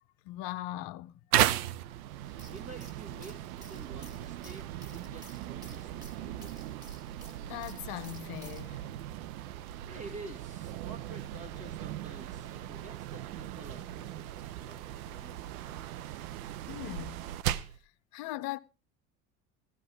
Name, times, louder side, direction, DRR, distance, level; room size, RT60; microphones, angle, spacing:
voice 1, 0.2-1.1 7.5-8.9 16.7-17.3 17.8-18.6, left 16 dB, 55° left, 0.7 m, -39 dB
sound 1, 1.3-17.8, right 13 dB, 65° right, 0.8 m, -36 dB
sound 2, 2.2-8.7, equal, 10° right, 2.2 m, -55 dB
voice 2, 2.5-6.8 9.9-14.8 15.1-16.2, right 2 dB, 35° right, 2.2 m, -50 dB
15.0 x 13.5 x 3.6 m
hypercardioid pair, 70°, 44 cm